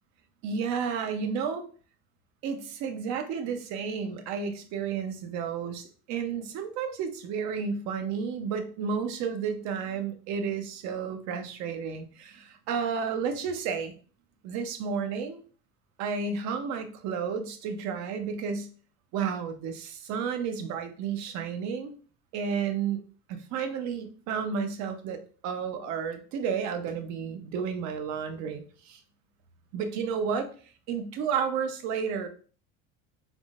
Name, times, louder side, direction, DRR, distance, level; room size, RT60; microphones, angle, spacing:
voice 1, 0.4-1.7 2.4-13.9 14.4-15.4 16.0-18.7 19.1-21.9 22.3-23.0 23.3-29.0 29.7-30.5 30.9-32.3, right 6 dB, 60° right, 7 dB, 0.8 m, -32 dB
4.2 x 3.7 x 2.4 m, 0.40 s
supercardioid pair, 130°, 32 cm